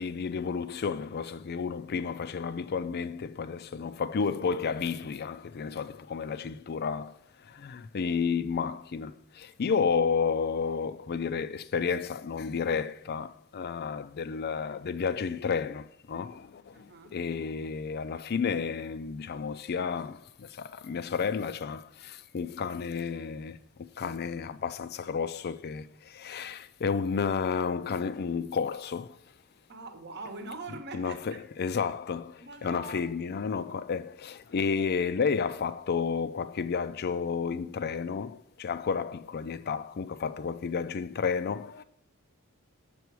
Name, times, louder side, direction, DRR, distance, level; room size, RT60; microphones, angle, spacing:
voice 1, 0.0-7.2 7.4-23.6 24.0-29.2 30.9-41.8, left 5 dB, 50° left, 0.4 m, -31 dB
voice 2, 16.7-17.2 29.7-31.4 32.4-33.1 34.5-34.7, right 3 dB, 50° right, 1.0 m, -43 dB
6.9 x 6.9 x 4.6 m
head